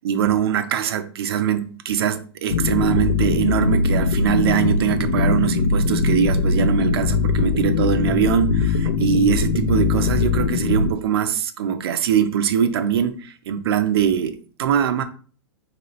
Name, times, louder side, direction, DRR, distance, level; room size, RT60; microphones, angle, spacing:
voice 1, 0.0-15.0, right 8 dB, 65° right, 0.6 m, -22 dB
sound 1, 2.5-10.9, left 4 dB, 70° left, 0.7 m, -21 dB
4.6 x 3.0 x 3.0 m
hypercardioid pair, 105°, 14 cm